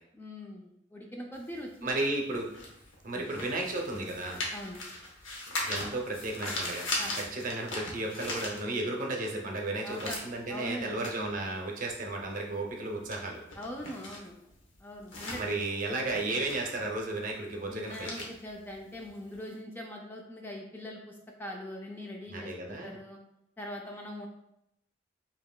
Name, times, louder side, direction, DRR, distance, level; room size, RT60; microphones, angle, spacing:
voice 1, 0.1-1.9 3.1-3.3 4.5-4.8 7.0-7.1 9.8-10.2 10.5-11.0 13.6-14.3 14.8-15.4 17.7-23.2 23.6-24.3, left 1 dB, 10° left, 0 dB, 0.3 m, -42 dB
sound 1, 1.3-9.1 9.4-19.5, left 2 dB, 80° left, 0.9 m, -40 dB
voice 2, 1.8-2.5 3.0-4.4 5.7-6.9 7.1-13.4 15.3-18.1 22.3-23.0, right 2 dB, 45° right, 1 dB, 0.6 m, -34 dB
5.1 x 2.8 x 2.2 m, 0.82 s
head